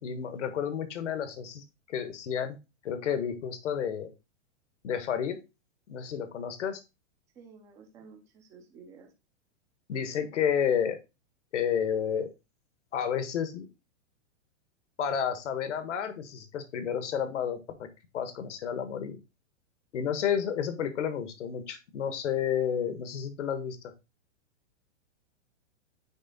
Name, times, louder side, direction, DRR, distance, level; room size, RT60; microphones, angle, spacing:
voice 1, 0.0-2.6 2.8-4.1 4.8-5.4 5.9-6.8 9.9-11.0 11.5-12.3 12.9-13.7 15.0-17.9 18.1-19.2 19.9-23.9, left 8 dB, 75° left, 9 dB, 1.4 m, -31 dB
voice 2, 7.3-9.1, right 5 dB, 10° right, 3 dB, 0.5 m, -52 dB
9.8 x 3.3 x 4.0 m, 0.26 s
hypercardioid pair, 170°, 36 cm